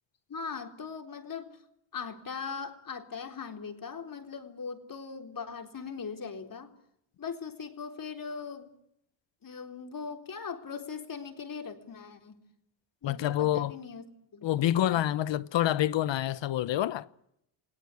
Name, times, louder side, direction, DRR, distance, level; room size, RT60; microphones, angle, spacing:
voice 1, 0.3-1.6 1.9-6.7 7.2-8.7 9.4-12.4 13.0-14.0 14.3-15.0, left 5 dB, 45° left, 3.9 m, -40 dB
voice 2, 13.0-13.7 14.4-17.1, left 12 dB, 65° left, 0.9 m, -27 dB
29.0 x 18.0 x 8.5 m
cardioid pair, 90°, 48 cm